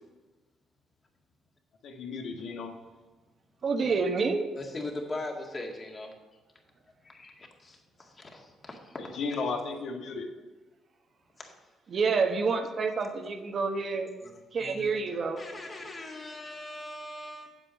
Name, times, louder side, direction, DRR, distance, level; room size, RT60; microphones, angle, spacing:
voice 1, 1.8-2.7 9.0-10.3, left 4 dB, 70° left, 3 dB, 1.4 m, -34 dB
voice 2, 3.6-4.5 11.9-14.1 14.5-15.4, right 4 dB, 45° right, 6 dB, 1.0 m, -28 dB
voice 3, 4.6-6.1 7.0-9.4 11.4-11.5 14.2-14.3 14.6-14.9 15.4-17.6, left 2 dB, 30° left, 1 dB, 1.9 m, -40 dB
8.2 x 7.6 x 5.2 m, 1.2 s
cardioid pair, 105°, 0 cm